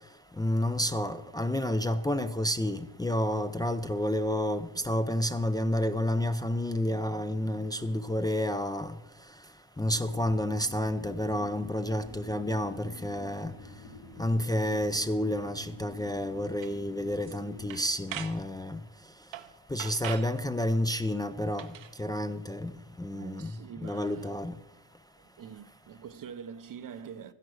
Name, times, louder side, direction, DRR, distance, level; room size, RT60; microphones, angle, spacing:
voice 1, 0.4-8.9 9.8-13.5 14.2-18.8 19.7-21.7 22.0-22.7 23.0-23.5 23.8-24.6, left 1 dB, 10° left, 0.5 m, -30 dB
sound 1, 9.8-17.7, left 2 dB, 50° left, 3.6 m, -48 dB
sound 2, 16.6-16.7 17.1-17.4 17.7-18.4 19.3-19.5 19.8-20.3 21.5-21.9, right 11 dB, 85° right, 1.1 m, -40 dB
voice 2, 23.1-24.6 25.2-27.3, right 7 dB, 45° right, 0.7 m, -45 dB
12.5 x 11.0 x 6.3 m
cardioid pair, 125°, 45 cm